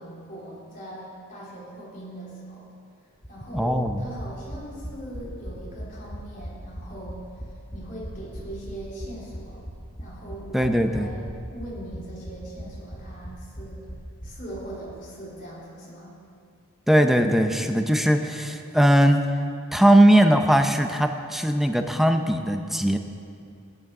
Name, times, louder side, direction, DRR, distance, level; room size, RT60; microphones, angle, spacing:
voice 1, 0.0-2.7 3.3-9.6 10.0-11.2 11.5-13.9 14.2-16.2, right 1 dB, 35° left, -7 dB, 3.7 m, -40 dB
sound 1, 3.2-15.0 15.2-15.3 15.5-15.6, equal, 20° left, 1.2 m, -39 dB
voice 2, 3.5-4.0 10.5-11.1 16.9-19.2 19.7-23.0, right 1 dB, ahead, 6 dB, 0.6 m, -19 dB
17.5 x 6.2 x 6.0 m, 2.4 s
head